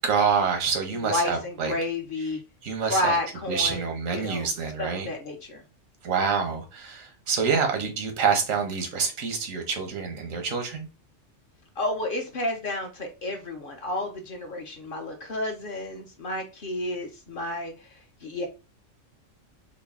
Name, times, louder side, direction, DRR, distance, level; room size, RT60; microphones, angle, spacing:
voice 1, 0.0-1.7 2.6-3.1 3.5-5.1 6.0-10.9, right 6 dB, 90° right, 1.2 m, -27 dB
voice 2, 1.0-2.4 2.9-4.5 4.8-5.6 11.8-18.5, left 1 dB, 50° left, 0.7 m, -31 dB
3.8 x 2.1 x 3.4 m
omnidirectional pair, 1.3 m